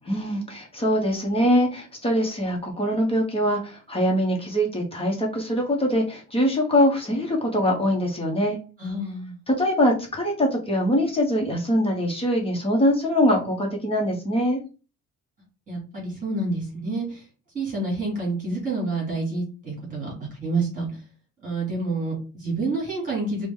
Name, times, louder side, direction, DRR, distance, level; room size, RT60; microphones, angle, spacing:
voice 1, 0.0-8.6 9.5-14.6, equal, 20° left, 0 dB, 0.8 m, -23 dB
voice 2, 8.8-9.4 15.7-17.2 17.5-20.1 20.4-20.9 21.4-23.5, right 2 dB, 25° right, -3 dB, 2.3 m, -28 dB
4.7 x 2.1 x 3.6 m, 0.35 s
cardioid pair, 175°, 31 cm